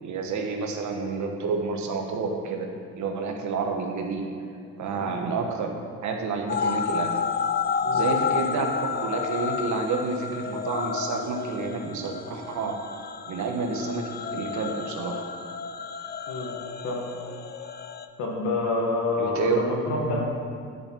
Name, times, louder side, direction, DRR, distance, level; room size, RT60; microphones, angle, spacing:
voice 1, 0.0-2.7 2.9-4.3 4.8-5.7 6.0-7.1 7.9-8.7 9.0-12.8 13.3-15.2 19.2-19.6 19.9-20.2, right 4 dB, 70° right, 3 dB, 1.3 m, -29 dB
sound 1, 6.5-18.1, left 6 dB, 35° left, 0.5 m, -31 dB
voice 2, 18.2-20.2, left 2 dB, 90° left, -1 dB, 1.8 m, -28 dB
10.5 x 5.5 x 5.8 m, 2.2 s
cardioid pair, 90°, 30 cm